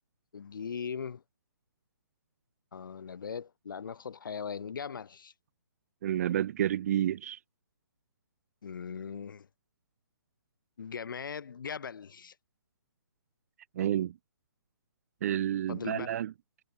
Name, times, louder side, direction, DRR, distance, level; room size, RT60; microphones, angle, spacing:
voice 1, 0.3-1.2 2.7-5.3 8.6-9.5 10.8-12.3 15.7-16.1, left 6 dB, 65° left, 3.7 m, -39 dB
voice 2, 6.0-7.4 13.8-14.1 15.2-16.3, right 11 dB, 40° right, 0.6 m, -30 dB
figure-of-eight pair, 140°, 12 cm